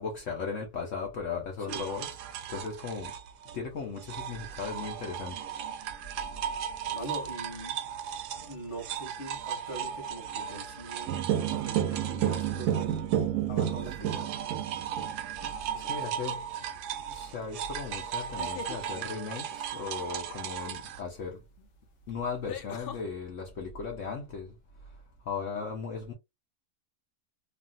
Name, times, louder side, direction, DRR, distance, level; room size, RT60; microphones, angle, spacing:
voice 1, 0.0-2.2 2.5-3.1 3.5-5.4 15.7-16.5 17.1-21.4 22.1-24.5 25.3-26.1, left 5 dB, 60° left, 1.1 m, -37 dB
sound 1, 1.7-13.3 13.6-21.0, right 9 dB, 90° right, 1.2 m, -37 dB
voice 2, 6.8-7.8 8.4-11.2 11.5-12.9 13.5-14.3, right 1 dB, 20° left, 1.2 m, -42 dB
sound 2, 11.1-15.5, right 10 dB, 70° right, 0.9 m, -30 dB
sound 3, 15.6-16.0 18.2-18.8 21.1-21.2 22.5-23.0, left 9 dB, 90° left, 0.5 m, -41 dB
3.2 x 2.5 x 2.4 m
omnidirectional pair, 1.7 m